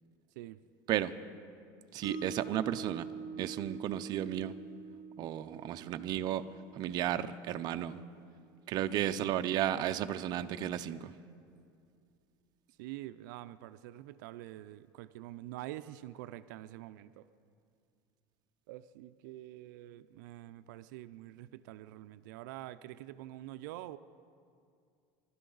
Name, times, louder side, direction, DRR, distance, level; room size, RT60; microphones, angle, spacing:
voice 1, 1.9-3.1 3.4-4.5 5.2-6.4 6.8-8.0 8.7-11.1, right 11 dB, 45° right, 8 dB, 0.6 m, -33 dB
Mallet percussion, 2.0-8.2, right 5 dB, ahead, 3.1 m, -46 dB
voice 2, 12.8-17.3 18.7-24.0, right 15 dB, 85° right, 12 dB, 0.4 m, -46 dB
28.0 x 12.0 x 3.9 m, 2.4 s
cardioid pair, 145°, 10 cm